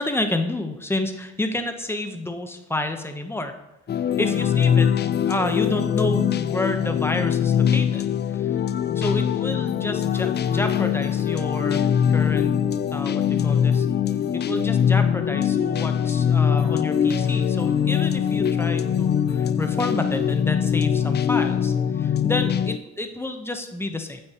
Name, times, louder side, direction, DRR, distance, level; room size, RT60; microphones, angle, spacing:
voice 1, 0.0-3.5 4.2-4.9 5.2-8.0 8.3-8.6 8.9-11.8 12.1-12.5 12.9-13.9 14.3-24.2, left 2 dB, 10° left, 6 dB, 0.8 m, -29 dB
sound 1, 3.9-22.8, left 8 dB, 35° left, 0.4 m, -22 dB
8.9 x 7.9 x 2.9 m, 0.98 s
cardioid pair, 90°, 30 cm